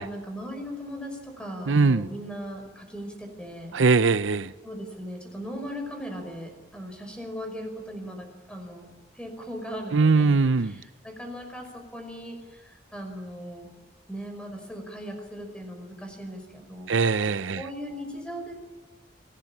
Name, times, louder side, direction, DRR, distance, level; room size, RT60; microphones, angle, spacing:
voice 1, 0.0-3.8 4.6-13.7 14.1-16.9 17.6-18.6, equal, 5° left, 4 dB, 5.5 m, -38 dB
voice 2, 1.7-2.1 3.7-4.5 9.9-10.8 16.9-17.6, right 4 dB, 90° right, 14 dB, 0.7 m, -21 dB
30.0 x 18.0 x 7.3 m, 1.2 s
head